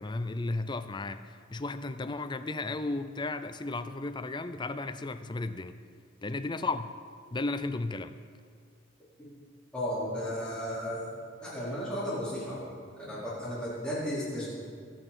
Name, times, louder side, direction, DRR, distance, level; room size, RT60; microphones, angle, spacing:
voice 1, 0.0-5.8 6.2-7.0 7.3-8.1, left 2 dB, 25° left, 10 dB, 0.5 m, -34 dB
voice 2, 9.7-11.1 11.4-14.5, equal, 5° left, -10 dB, 4.5 m, -34 dB
22.5 x 9.0 x 4.4 m, 2.1 s
head